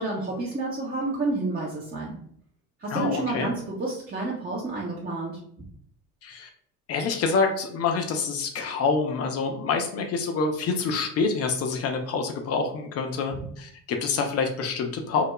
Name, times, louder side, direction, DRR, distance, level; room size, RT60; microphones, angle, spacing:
voice 1, 0.0-2.2 2.8-5.4, right 2 dB, 20° right, -5 dB, 0.7 m, -30 dB
voice 2, 2.9-3.5 6.2-6.5 6.9-15.2, left 4 dB, 35° left, 4 dB, 0.5 m, -27 dB
2.3 x 2.0 x 3.0 m, 0.64 s
hypercardioid pair, 65°, 48 cm